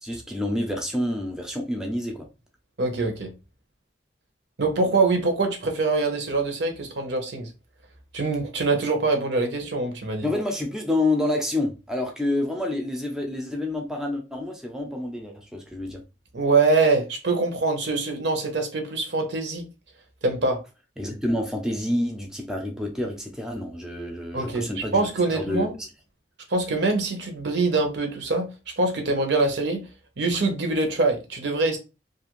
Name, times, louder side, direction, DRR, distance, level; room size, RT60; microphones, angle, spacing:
voice 1, 0.0-2.3 10.2-16.0 21.0-25.0 25.3-25.9, left 1 dB, 5° right, 0.4 m, -28 dB
voice 2, 2.8-3.3 4.6-7.5 8.1-10.3 16.3-19.6 20.2-20.6 24.3-25.7 26.5-28.5 28.8-29.8 30.2-31.8, right 3 dB, 75° right, 0.8 m, -24 dB
2.7 x 2.4 x 3.0 m
head